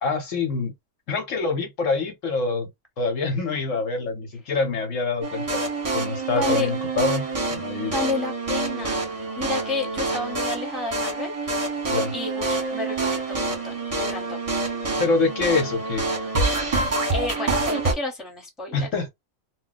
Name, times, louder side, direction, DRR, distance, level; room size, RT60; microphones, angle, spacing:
voice 1, 0.0-0.7 1.1-2.7 3.0-5.7 5.9-7.2 7.5-8.0 11.9-12.1 15.0-16.1 18.7-19.1, left 4 dB, 70° left, 1.2 m, -25 dB
sound 1, 5.2-17.9, right 3 dB, 30° right, 0.9 m, -27 dB
voice 2, 6.4-6.7 7.9-9.1 9.4-11.3 12.1-14.4 17.1-18.9, left 2 dB, ahead, 1.0 m, -31 dB
2.3 x 2.1 x 3.9 m
omnidirectional pair, 1.4 m